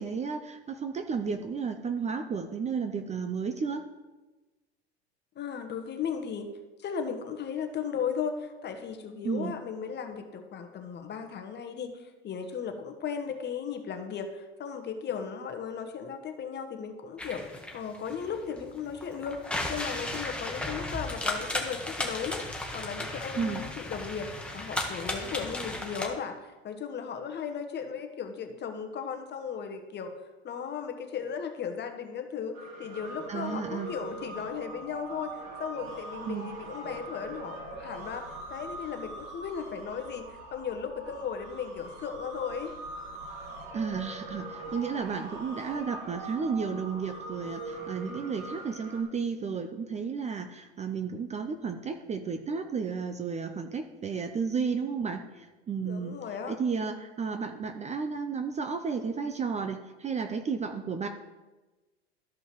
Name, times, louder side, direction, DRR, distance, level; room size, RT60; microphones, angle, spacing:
voice 1, 0.0-3.8 9.2-9.5 23.4-23.6 33.3-33.9 36.2-36.5 43.7-56.2 56.5-61.1, right 5 dB, 20° right, 6 dB, 0.6 m, -33 dB
voice 2, 5.3-6.5 6.8-17.4 17.7-22.4 22.7-24.3 24.5-30.1 30.4-38.2 38.5-42.7 55.8-56.6, left 7 dB, 30° left, 6 dB, 1.2 m, -36 dB
sound 1, 17.2-26.1, left 1 dB, 5° left, 1.4 m, -35 dB
sound 2, 32.5-49.0, right 2 dB, 55° right, 2.5 m, -42 dB
13.5 x 5.3 x 3.1 m, 1.2 s
hypercardioid pair, 95°, 33 cm